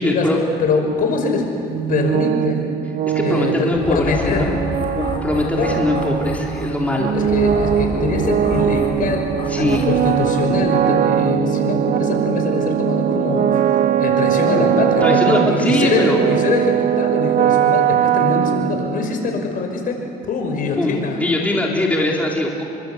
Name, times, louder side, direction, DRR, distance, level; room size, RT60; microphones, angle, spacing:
voice 1, 0.0-0.4 3.1-4.5 5.0-7.2 9.5-9.8 15.0-16.2 20.8-22.7, left 2 dB, 10° left, -2 dB, 3.8 m, -21 dB
voice 2, 0.6-1.5 1.9-2.6 3.2-4.5 5.6-5.8 7.1-9.3 9.6-13.7 14.0-21.2, left 4 dB, 55° left, 3 dB, 5.8 m, -23 dB
sound 1, 1.7-19.3, right 10 dB, 55° right, 0.8 m, -20 dB
sound 2, 3.7-10.6, left 3 dB, 30° left, 6.3 m, -30 dB
29.5 x 24.5 x 8.2 m, 2.7 s
cardioid pair, 110°, 17 cm